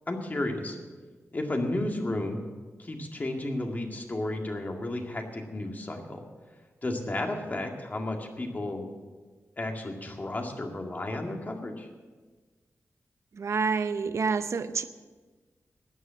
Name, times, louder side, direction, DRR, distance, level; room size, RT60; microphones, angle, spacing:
voice 1, 0.1-0.8 1.3-2.4 2.8-6.2 6.8-8.8 9.6-11.9, left 1 dB, 35° left, 2 dB, 2.0 m, -32 dB
voice 2, 13.4-14.8, right 5 dB, 70° right, 11 dB, 0.8 m, -28 dB
13.0 x 9.8 x 7.4 m, 1.4 s
wide cardioid pair, 110°, 5 cm